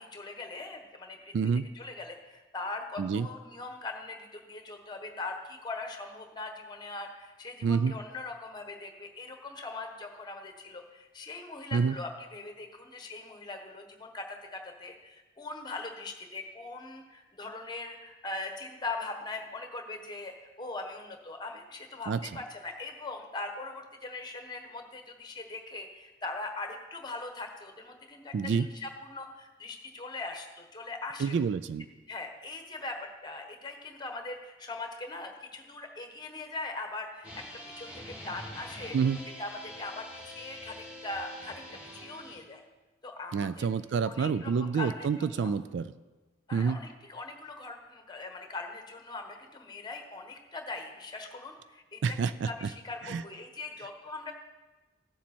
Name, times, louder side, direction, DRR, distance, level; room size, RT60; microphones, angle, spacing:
voice 1, 0.0-1.3 1.7-31.4 32.1-39.0 39.4-42.6 43.0-43.7 44.1-45.5 46.5-52.2 52.4-54.3, left 3 dB, 20° left, 4 dB, 1.1 m, -41 dB
voice 2, 1.3-1.7 3.0-3.3 7.6-7.9 11.7-12.0 22.1-22.4 28.3-28.7 31.2-31.9 38.9-39.2 43.3-45.9 46.5-46.8 52.0-52.7 53.0-53.2, right 6 dB, 65° right, 14 dB, 0.3 m, -28 dB
sound 1, 37.2-42.4, left 1 dB, 5° right, 2.2 m, -45 dB
15.0 x 7.3 x 4.3 m, 1.2 s
head